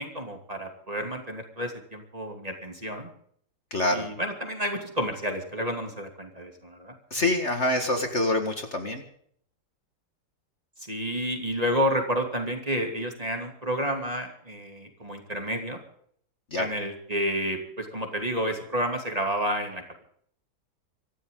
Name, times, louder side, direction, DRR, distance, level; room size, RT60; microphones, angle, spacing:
voice 1, 0.0-3.1 3.9-6.9 10.9-15.8 16.6-19.8, equal, 20° right, 3 dB, 2.9 m, -30 dB
voice 2, 3.7-4.1 7.1-9.0 16.5-16.7, left 2 dB, 40° left, 5 dB, 2.1 m, -26 dB
25.0 x 14.5 x 3.9 m, 0.65 s
omnidirectional pair, 1.9 m